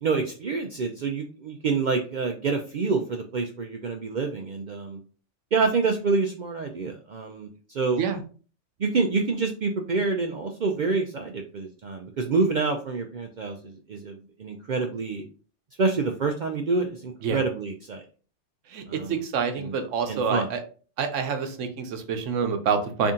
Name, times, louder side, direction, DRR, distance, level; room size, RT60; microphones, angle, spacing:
voice 1, 0.0-5.0 5.5-8.0 8.8-15.2 15.8-18.1 18.9-19.2 19.6-19.7 20.1-20.5, right 4 dB, 60° right, 3 dB, 0.5 m, -27 dB
voice 2, 18.7-20.6 21.0-23.1, right 6 dB, 85° right, 7 dB, 1.0 m, -27 dB
3.4 x 2.7 x 3.6 m, 0.39 s
omnidirectional pair, 1.3 m